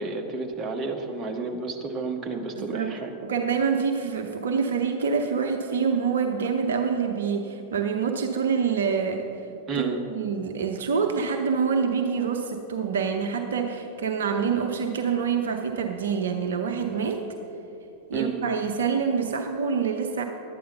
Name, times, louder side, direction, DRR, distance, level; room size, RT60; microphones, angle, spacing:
voice 1, 0.0-3.1 9.7-10.0 18.1-18.4, right 4 dB, 25° right, 1 dB, 1.3 m, -31 dB
voice 2, 2.5-2.9 3.2-9.4 9.7-17.2 18.1-20.2, right 6 dB, 65° right, 4 dB, 0.7 m, -26 dB
11.5 x 9.4 x 5.5 m, 2.7 s
figure-of-eight pair, 90°, 0 cm